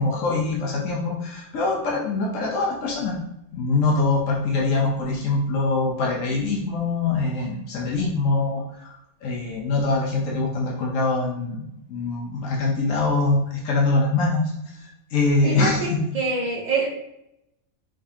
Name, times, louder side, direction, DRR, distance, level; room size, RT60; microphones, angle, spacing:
voice 1, 0.0-3.2 3.5-8.9 9.2-11.6 11.9-14.4 15.1-15.8, left 3 dB, 90° left, -2 dB, 1.2 m, -23 dB
voice 2, 15.4-16.9, right 3 dB, 45° right, -3 dB, 0.6 m, -25 dB
5.0 x 3.3 x 2.7 m, 0.82 s
omnidirectional pair, 1.3 m